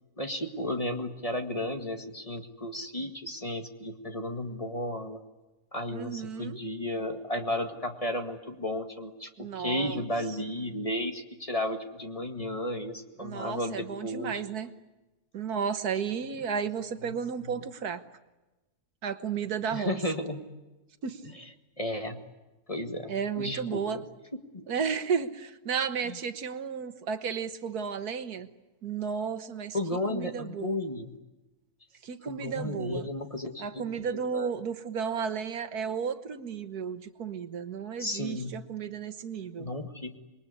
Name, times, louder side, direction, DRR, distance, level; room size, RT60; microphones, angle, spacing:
voice 1, 0.2-5.2 5.7-14.4 17.1-17.2 17.4-17.6 19.7-20.5 21.2-21.5 21.8-22.2 22.7-24.0 24.5-24.7 26.1-26.2 29.7-31.2 32.2-34.5 38.0-38.6 39.6-40.2, left 1 dB, 20° left, 6 dB, 1.9 m, -34 dB
voice 2, 5.9-6.6 9.4-10.0 13.2-14.7 15.3-18.0 19.0-20.0 21.0-21.2 23.1-24.0 24.7-28.5 28.8-29.8 30.1-30.8 32.0-33.1 33.6-39.7, right 6 dB, 75° right, 10 dB, 1.8 m, -33 dB
27.0 x 21.5 x 9.7 m, 1.1 s
omnidirectional pair, 1.6 m